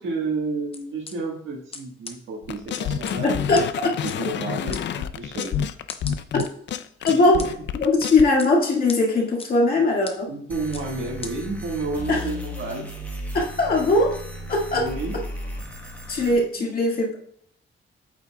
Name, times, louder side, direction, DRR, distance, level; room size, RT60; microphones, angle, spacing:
voice 1, 0.0-5.6 7.1-7.5 10.3-12.9 14.7-15.2 16.6-16.8, right 3 dB, 70° right, -1 dB, 1.6 m, -31 dB
sound 1, 0.7-1.1 1.7-1.8 2.1-2.2 2.7-3.2 3.6-3.7 4.1-4.2 4.7-4.8 5.4-5.5 5.9-6.5 7.1-7.5 8.1-8.5 8.9-9.0 9.4-9.5 10.1-10.2 10.7-10.8 11.2-11.3, left 4 dB, 30° left, 0.7 m, -36 dB
sound 2, 2.5-8.2, left 9 dB, 60° left, 0.4 m, -29 dB
voice 2, 3.5-3.9 7.0-7.5 7.8-10.3 12.1-12.2 13.3-14.2 14.5-14.9 16.1-17.2, left 2 dB, 45° left, -1 dB, 2.0 m, -20 dB
sound 3, 10.5-16.3, equal, 10° left, 1.2 m, -35 dB
8.5 x 8.2 x 2.3 m, 0.65 s
wide cardioid pair, 175°, 21 cm